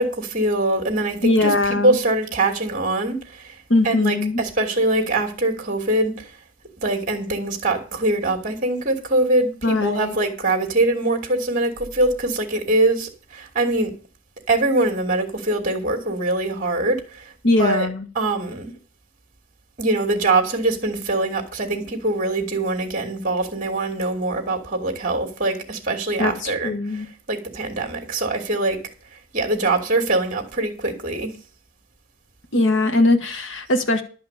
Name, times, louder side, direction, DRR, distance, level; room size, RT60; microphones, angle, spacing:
voice 1, 0.0-1.5 1.8-3.6 3.8-6.3 6.8-13.9 14.5-17.3 17.6-17.9 18.1-18.7 19.8-28.8 29.3-31.3, right 2 dB, 35° right, 2.8 m, -23 dB
voice 2, 1.2-2.0 3.7-4.4 9.6-10.1 17.4-18.0 26.2-27.1 32.5-34.0, left 2 dB, 60° left, 1.3 m, -20 dB
12.0 x 5.7 x 8.4 m
head